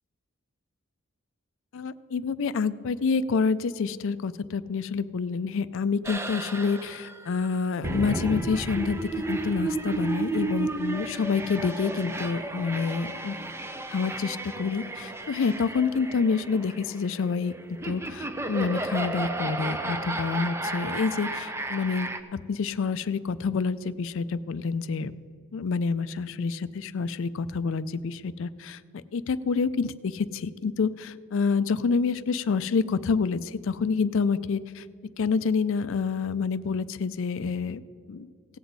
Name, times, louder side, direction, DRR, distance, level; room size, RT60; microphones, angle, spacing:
voice 1, 1.7-9.0 9.3-13.4 13.9-22.1 22.5-25.1 25.5-28.8 29.1-34.8 35.2-37.8 38.1-38.3, left 5 dB, 60° left, 15 dB, 0.4 m, -28 dB
sound 1, 6.0-22.2, right 2 dB, 10° right, 0.5 m, -33 dB
17.0 x 7.8 x 4.0 m, 2.3 s
head